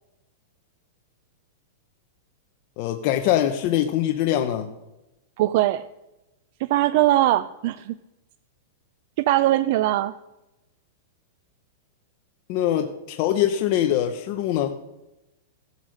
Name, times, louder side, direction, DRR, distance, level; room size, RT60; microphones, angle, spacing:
voice 1, 2.8-4.7 12.5-14.8, left 11 dB, 35° left, 5 dB, 0.8 m, -23 dB
voice 2, 5.4-5.8 6.6-7.9 9.2-10.1, right 15 dB, 45° right, 13 dB, 0.4 m, -21 dB
16.0 x 8.1 x 6.5 m, 0.97 s
supercardioid pair, 170°, 0 cm